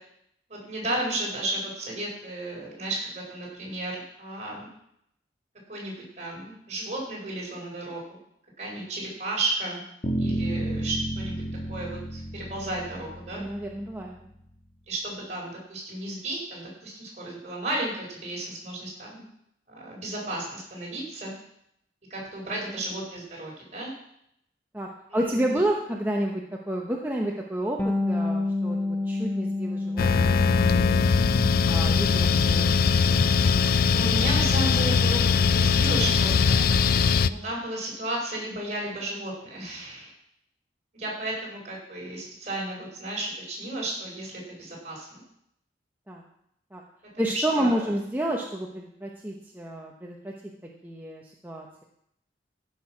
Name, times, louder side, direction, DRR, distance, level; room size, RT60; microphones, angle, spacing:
voice 1, 0.5-4.7 5.7-8.2 8.6-9.8 10.2-11.4 11.7-13.4 14.9-19.3 19.7-21.3 22.1-23.9 25.1-25.6 33.9-40.1 40.9-45.2 47.2-47.9, right 1 dB, 40° right, -3 dB, 4.9 m, -33 dB
sound 1, 10.0-14.1, right 1 dB, 35° left, 1.5 m, -32 dB
voice 2, 13.4-14.2 24.7-31.1 31.7-32.7 33.0-33.3 46.1-46.2 46.7-46.8 47.2-50.3 50.8-51.7, right 1 dB, 10° right, -1 dB, 0.9 m, -30 dB
Bass guitar, 27.8-37.4, left 2 dB, 10° left, 1.2 m, -32 dB
sound 2, 30.0-37.3, left 5 dB, 55° left, 0.4 m, -21 dB
14.5 x 6.3 x 5.9 m, 0.75 s
head